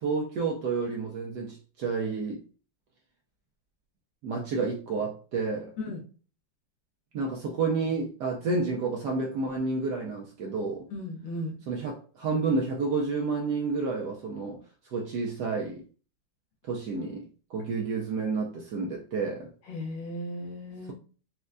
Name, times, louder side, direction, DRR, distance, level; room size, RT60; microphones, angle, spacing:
voice 1, 0.0-2.4 4.2-5.7 7.1-10.9 11.7-14.6 14.9-15.8 16.7-19.5, right 4 dB, 75° right, 1.0 m, -30 dB
voice 2, 10.9-11.6 19.7-20.9, left 1 dB, 70° left, 1.5 m, -36 dB
4.3 x 2.2 x 2.4 m
omnidirectional pair, 2.2 m